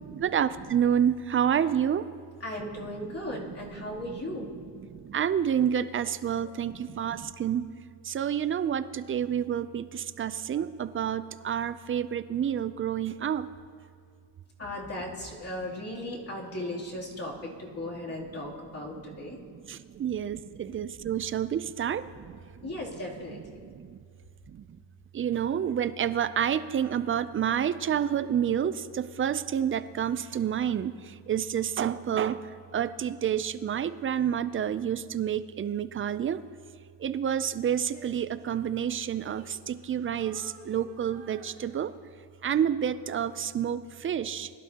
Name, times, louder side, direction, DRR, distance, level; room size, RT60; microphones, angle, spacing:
voice 1, 0.1-2.1 3.8-4.2 4.9-7.7 8.0-13.5 19.5-22.7 23.7-24.0 24.5-24.7 25.1-36.4 37.0-41.9 42.4-44.5, right 9 dB, 30° right, 14 dB, 0.4 m, -29 dB
voice 2, 2.4-4.5 6.4-6.5 14.6-19.4 22.6-23.6, left 1 dB, 30° left, -4 dB, 2.9 m, -37 dB
Female singing, 37.7-39.9 40.2-42.2 42.8-43.0, right 3 dB, 55° right, 1.9 m, -53 dB
21.5 x 11.5 x 2.9 m, 2.2 s
cardioid pair, 110°, 45 cm